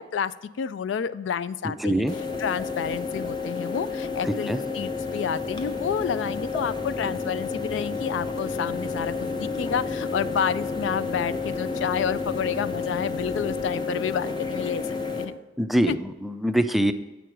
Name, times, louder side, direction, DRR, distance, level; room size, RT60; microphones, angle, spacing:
voice 1, 0.0-2.1 2.4-15.3 15.9-16.0, left 7 dB, 80° left, 16 dB, 0.3 m, -30 dB
voice 2, 1.8-2.1 4.5-4.6 15.6-16.9, equal, ahead, 8 dB, 0.3 m, -23 dB
sound 1, 2.1-15.2, left 4 dB, 25° left, 0.7 m, -30 dB
sound 2, 4.7-13.7, left 1 dB, 40° left, 3.0 m, -44 dB
8.0 x 6.1 x 4.7 m, 1.1 s
head